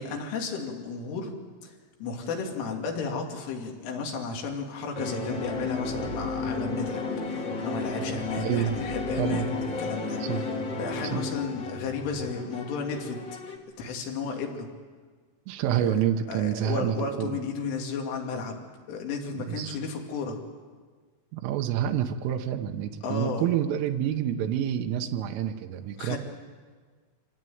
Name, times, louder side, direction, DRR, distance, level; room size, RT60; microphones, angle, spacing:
voice 1, 0.0-1.3 1.6-1.7 2.0-9.5 9.8-10.4 10.8-13.2 13.8-14.7 15.8-15.9 16.3-20.4 23.0-23.5 26.0-26.2, left 4 dB, 80° left, 1 dB, 5.0 m, -33 dB
sound 1, 4.9-13.6, left 3 dB, 50° left, 1.4 m, -33 dB
voice 2, 8.4-8.8 9.2-9.5 10.2-10.5 11.0-11.3 15.5-17.3 19.5-19.8 21.3-26.2, right 10 dB, 90° right, 5 dB, 3.5 m, -28 dB
25.5 x 17.5 x 9.3 m, 1.5 s
omnidirectional pair, 5.6 m